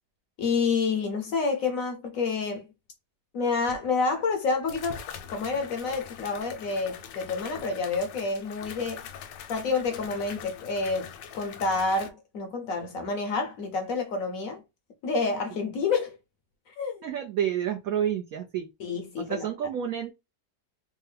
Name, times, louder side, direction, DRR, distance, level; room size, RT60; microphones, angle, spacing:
voice 1, 0.4-2.7 3.3-5.0 5.3-9.0 9.5-14.6 15.0-16.2 16.7-17.0 18.8-19.5, left 4 dB, 65° left, 0.9 m, -28 dB
sound 1, 3.7-3.8 4.7-12.1, left 8 dB, 80° left, 1.3 m, -43 dB
voice 2, 17.0-18.7 19.2-20.1, right 9 dB, 70° right, 0.8 m, -29 dB
3.4 x 2.2 x 3.2 m
omnidirectional pair, 1.9 m